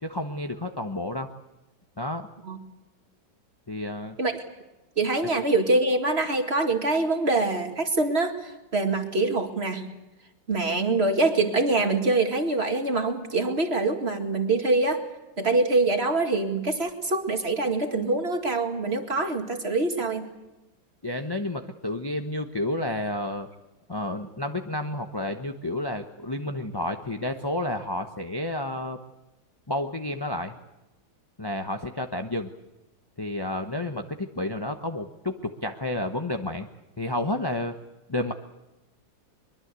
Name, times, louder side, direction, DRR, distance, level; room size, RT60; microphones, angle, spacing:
voice 1, 0.0-1.3 2.0-2.3 3.7-4.2 21.0-23.5 23.9-29.0 29.7-30.6 31.4-32.5 33.2-36.7 37.0-37.7 38.1-38.3, left 1 dB, 20° left, 5 dB, 0.7 m, -30 dB
voice 2, 5.0-9.9 10.5-15.0 15.4-20.3, right 2 dB, 35° right, 5 dB, 2.3 m, -24 dB
23.0 x 22.5 x 8.3 m, 0.99 s
omnidirectional pair, 2.1 m